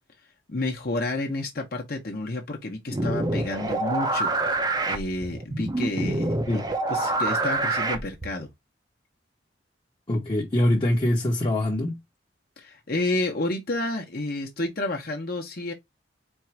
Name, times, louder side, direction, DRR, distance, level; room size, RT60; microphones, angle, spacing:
voice 1, 0.5-4.5 4.8-6.6 6.9-8.5 12.6-15.7, left 2 dB, 55° left, 1.0 m, -30 dB
sound 1, 2.9-8.4, right 2 dB, 20° right, 0.6 m, -26 dB
voice 2, 10.1-12.0, left 1 dB, 25° left, 0.9 m, -24 dB
4.5 x 2.5 x 4.4 m
head